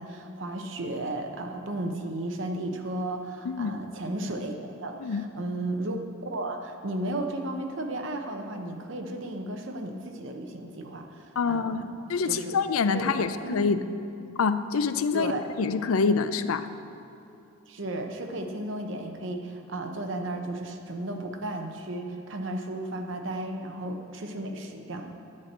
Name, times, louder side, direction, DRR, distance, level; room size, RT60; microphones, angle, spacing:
voice 1, 0.0-11.9 12.2-12.5 12.9-13.8 15.1-15.4 17.7-25.1, right 1 dB, 65° right, 4 dB, 0.9 m, -34 dB
voice 2, 11.4-13.8 14.4-15.3 15.6-16.7, left 5 dB, 85° left, 11 dB, 0.5 m, -26 dB
11.0 x 4.4 x 7.9 m, 2.7 s
head